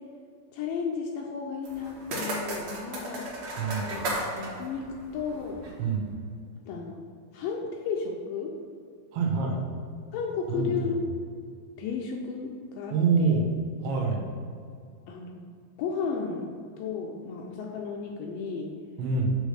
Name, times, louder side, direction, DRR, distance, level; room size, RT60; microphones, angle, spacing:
voice 1, 0.5-3.3 3.8-4.1 4.4-4.9 5.1-5.7 6.7-7.0 7.3-8.5 10.1-11.0 11.8-13.4 15.1-15.5 15.8-16.5 16.8-18.7, left 5 dB, 80° left, 1 dB, 2.1 m, -33 dB
sound 1, 1.6-5.8, right 1 dB, 60° right, 2.0 m, -35 dB
voice 2, 3.6-3.9 5.8-6.1 9.1-9.6 10.5-10.7 12.9-13.5 13.8-14.3 19.0-19.3, right 4 dB, 90° right, 0 dB, 3.0 m, -25 dB
7.3 x 3.5 x 6.4 m, 2.2 s
omnidirectional pair, 4.4 m